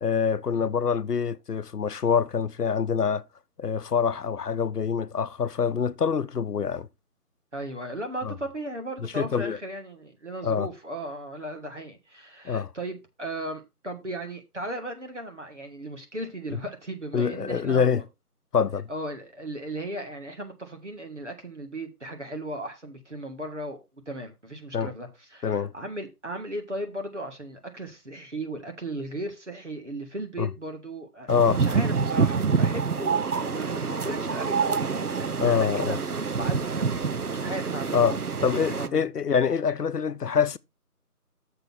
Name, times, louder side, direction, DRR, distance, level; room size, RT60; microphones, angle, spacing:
voice 1, 0.0-3.2 3.6-6.9 8.2-8.3 9.2-9.6 10.4-10.7 12.4-12.7 17.1-18.0 18.5-18.9 24.7-24.9 25.4-25.7 30.4-30.5 31.3-31.6 35.4-36.0 37.9-38.2 38.4-40.6, left 6 dB, 80° left, 0.7 m, -25 dB
voice 2, 7.5-18.0 18.9-23.8 24.1-38.1 38.4-39.1, right 1 dB, 50° right, 1.9 m, -36 dB
sound 1, 31.3-38.9, right 5 dB, 75° right, 0.8 m, -27 dB
6.7 x 5.5 x 6.0 m
figure-of-eight pair, 175°, 46 cm